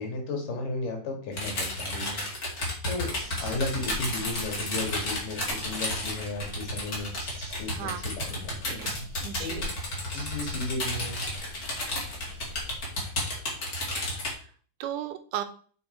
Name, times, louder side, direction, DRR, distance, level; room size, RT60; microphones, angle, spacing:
voice 1, 0.0-2.3 2.9-7.1 7.6-9.1 9.4-9.6 10.1-11.2 11.6-11.7, left 2 dB, 75° left, 2 dB, 3.4 m, -34 dB
sound 1, 1.3-14.3, left 1 dB, 30° left, 2.0 m, -32 dB
sound 2, 3.0-12.8, right 1 dB, 45° right, 2.0 m, -45 dB
voice 2, 7.7-8.1 8.6-9.7 14.3-14.5 14.8-15.4, right 11 dB, 80° right, 8 dB, 2.2 m, -36 dB
7.2 x 4.6 x 4.3 m, 0.43 s
omnidirectional pair, 3.9 m